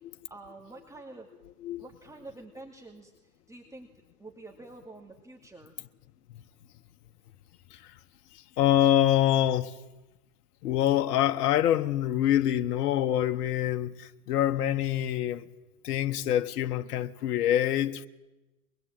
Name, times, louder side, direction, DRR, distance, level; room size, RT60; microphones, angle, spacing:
voice 1, 0.3-1.3 1.8-3.9 4.2-5.7, right 2 dB, 5° right, 2.5 m, -47 dB
voice 2, 8.6-9.7 10.6-15.5 15.8-18.1, left 11 dB, 75° left, 1.4 m, -25 dB
23.5 x 21.5 x 9.0 m
hypercardioid pair, 105°, 47 cm